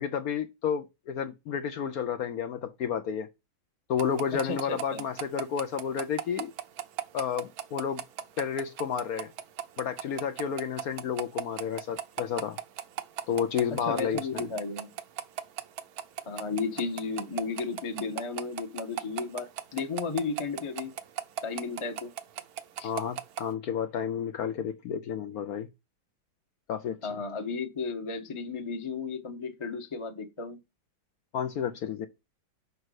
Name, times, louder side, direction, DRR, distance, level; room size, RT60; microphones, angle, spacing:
voice 1, 0.0-3.3 3.9-6.5 7.1-8.0 8.4-9.3 9.8-12.6 13.3-14.5 22.8-25.7 26.7-27.0 31.3-32.1, left 8 dB, 70° left, 0.8 m, -31 dB
sound 1, 4.0-23.5, right 10 dB, 65° right, 1.0 m, -35 dB
voice 2, 4.4-5.1 13.8-14.9 16.3-20.9 21.4-22.1 22.8-22.9 27.0-30.6, left 4 dB, 25° left, 0.7 m, -34 dB
6.7 x 5.0 x 4.7 m
omnidirectional pair, 2.1 m